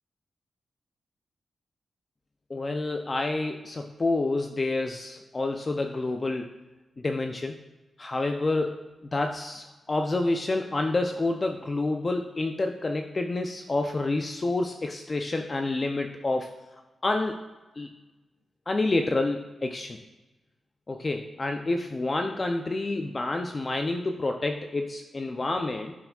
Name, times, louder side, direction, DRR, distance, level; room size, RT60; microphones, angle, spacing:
voice 1, 2.5-6.5 7.0-7.6 8.0-16.5 17.0-17.4 17.8-17.9 18.7-20.0 20.9-25.9, left 2 dB, 25° left, 4 dB, 0.3 m, -28 dB
11.0 x 4.7 x 2.2 m, 1.1 s
wide cardioid pair, 170°, 0 cm